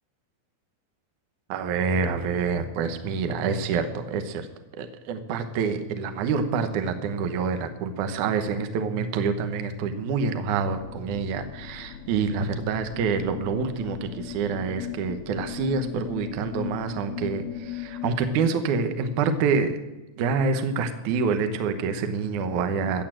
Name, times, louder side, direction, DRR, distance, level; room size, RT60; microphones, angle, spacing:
voice 1, 1.5-4.5 4.8-19.8 20.2-23.0, right 5 dB, 65° right, 8 dB, 2.0 m, -27 dB
sound 1, 10.8-18.5, left 10 dB, 80° left, 2.8 m, -38 dB
15.5 x 8.4 x 7.6 m, 1.0 s
omnidirectional pair, 5.0 m